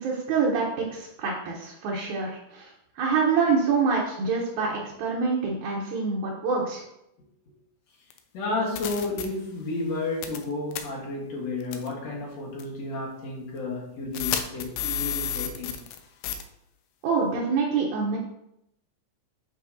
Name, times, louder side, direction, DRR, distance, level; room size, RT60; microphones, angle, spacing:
voice 1, 0.0-6.8 17.0-18.2, right 5 dB, 70° right, -3 dB, 2.3 m, -26 dB
sound 1, 8.1-8.2 8.8-9.3 10.2-10.4 10.7-10.8 11.7-11.9 12.6-12.7 14.1-16.0 16.2-16.4, left 9 dB, 80° left, 2.1 m, -30 dB
voice 2, 8.3-15.8, left 2 dB, 60° left, -3 dB, 2.4 m, -32 dB
7.6 x 5.5 x 2.7 m, 0.82 s
omnidirectional pair, 3.7 m